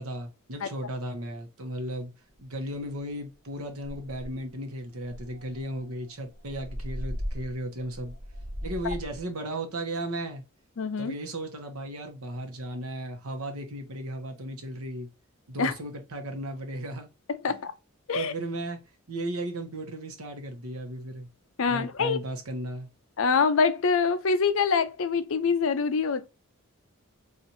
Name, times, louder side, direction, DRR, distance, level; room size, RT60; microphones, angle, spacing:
voice 1, 0.0-2.1 2.4-8.1 8.6-10.4 11.0-15.1 15.5-17.1 17.5-17.6 18.1-21.3 21.7-22.9, right 1 dB, 75° right, 0.9 m, -35 dB
sound 1, 2.4-2.5 2.8-3.1 3.4-3.5 3.8-4.5 5.0-9.2, equal, 40° right, 1.0 m, -38 dB
voice 2, 10.8-11.2 15.6-15.7 17.4-17.7 18.1-18.3 21.6-22.2 23.2-26.3, left 5 dB, 65° left, 0.5 m, -25 dB
4.3 x 2.5 x 2.6 m
head